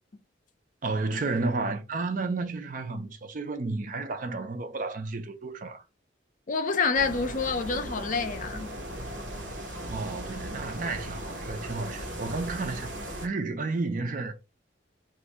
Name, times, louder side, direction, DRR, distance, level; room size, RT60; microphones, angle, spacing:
voice 1, 0.8-5.8 9.9-12.9 13.2-14.3, right 3 dB, 45° right, 0.5 m, -32 dB
voice 2, 6.5-8.7, left 4 dB, 45° left, 0.5 m, -27 dB
sound 1, 6.9-13.3, right 1 dB, 75° right, 0.9 m, -37 dB
2.6 x 2.5 x 4.1 m
head